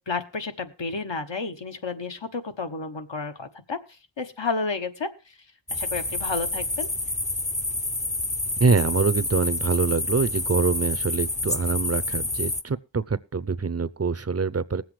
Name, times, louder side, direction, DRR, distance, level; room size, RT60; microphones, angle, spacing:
voice 1, 0.1-3.8 4.2-5.1 5.7-6.9, left 4 dB, 70° left, 1.3 m, -31 dB
sound 1, 5.7-12.6, left 2 dB, 15° left, 0.6 m, -28 dB
voice 2, 8.6-14.8, right 4 dB, 35° right, 0.6 m, -24 dB
20.0 x 7.8 x 3.2 m
wide cardioid pair, 40°, 46 cm